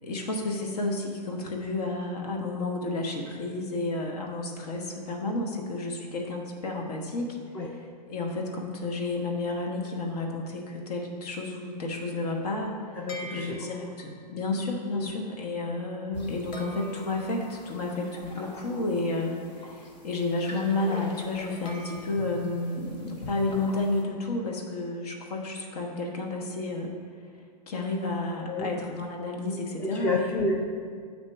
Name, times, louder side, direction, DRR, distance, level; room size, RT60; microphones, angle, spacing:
voice 1, 0.0-7.3 8.1-12.8 13.3-26.9 27.7-30.4, left 2 dB, 65° left, 1 dB, 1.1 m, -31 dB
voice 2, 12.9-13.9 14.9-15.2 28.4-28.7 29.8-30.6, left 2 dB, 10° left, -1 dB, 0.4 m, -30 dB
sound 1, 13.1-14.1 16.5-19.6 21.7-22.6, right 1 dB, 35° left, 0.9 m, -46 dB
sound 2, 16.1-24.0, left 1 dB, 85° left, 1.6 m, -45 dB
8.5 x 2.9 x 5.4 m, 2.1 s
hypercardioid pair, 135°, 21 cm